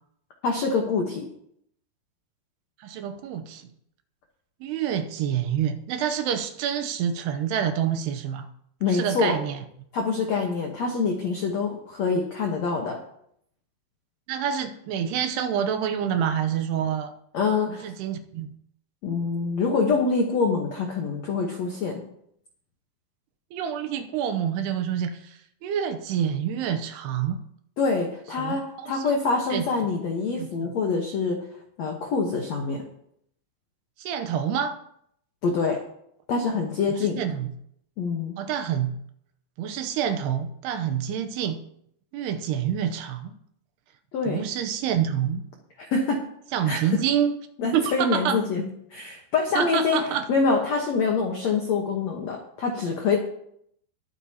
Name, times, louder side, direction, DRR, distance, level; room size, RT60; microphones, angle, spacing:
voice 1, 0.4-1.3 8.8-9.4 9.9-13.0 17.3-17.9 19.0-22.0 27.8-31.4 31.8-32.8 35.4-35.8 36.3-37.2 38.0-38.3 44.1-44.4 45.8-46.2 46.7-46.8 47.6-48.6 48.9-50.0 50.3-53.2, left 4 dB, 75° left, 2 dB, 1.5 m, -25 dB
voice 2, 2.8-3.7 4.6-8.5 8.8-9.6 14.3-17.1 17.7-18.5 23.5-27.4 28.4-29.1 29.5-29.7 30.4-30.5 34.0-34.8 36.9-37.5 38.4-39.0 39.6-41.6 42.1-43.3 44.3-45.4 46.5-47.3 47.6-48.4 49.6-50.2, right 9 dB, 80° right, 8 dB, 2.7 m, -27 dB
21.5 x 8.7 x 2.9 m, 0.70 s
omnidirectional pair, 5.0 m